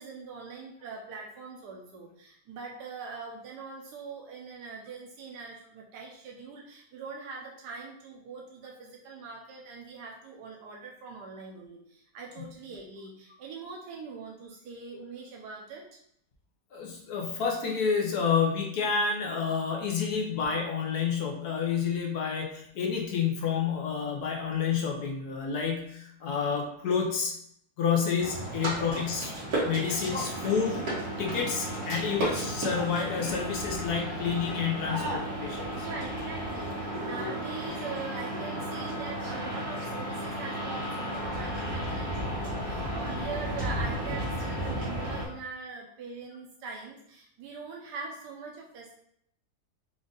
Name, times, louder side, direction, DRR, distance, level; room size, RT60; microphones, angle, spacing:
voice 1, 0.0-15.8 28.5-28.7 30.1-30.3 31.8-31.9 35.7-48.9, right 4 dB, 85° right, -1 dB, 1.3 m, -42 dB
voice 2, 16.7-27.3 27.8-29.3 29.6-30.9 31.2-35.9, left 6 dB, 75° left, 0 dB, 1.4 m, -29 dB
sound 1, 28.2-45.3, right 1 dB, 65° right, 2.0 m, -33 dB
5.0 x 2.6 x 3.8 m, 0.69 s
omnidirectional pair, 1.7 m